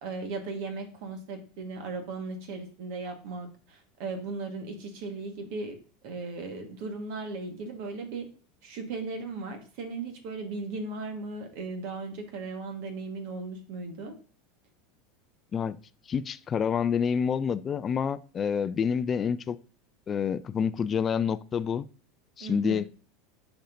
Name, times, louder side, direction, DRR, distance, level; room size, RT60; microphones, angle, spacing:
voice 1, 0.0-5.8 6.0-8.3 8.6-14.1 22.4-22.8, right 3 dB, 60° right, 1.6 m, -37 dB
voice 2, 16.1-19.6 20.1-21.9 22.4-22.8, left 7 dB, 30° left, 0.4 m, -28 dB
10.0 x 5.2 x 2.7 m
hypercardioid pair, 85°, 0 cm